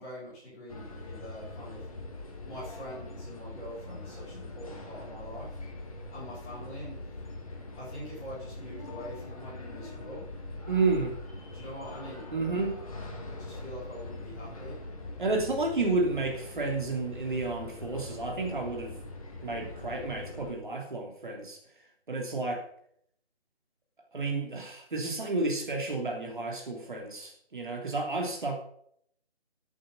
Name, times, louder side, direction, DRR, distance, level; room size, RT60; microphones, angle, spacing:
voice 1, 0.0-1.8 2.4-5.5 6.1-7.0 7.8-10.2 11.5-12.3 13.3-14.8, equal, 10° left, -9 dB, 4.9 m, -44 dB
sound 1, 0.7-20.5, left 2 dB, 35° left, 2.3 m, -42 dB
voice 2, 10.7-11.1 12.3-12.8 15.2-18.9 19.4-21.6 22.1-22.6 24.1-28.6, right 3 dB, 50° right, 1 dB, 3.1 m, -31 dB
14.5 x 8.7 x 5.4 m, 0.66 s
figure-of-eight pair, 160°, 33 cm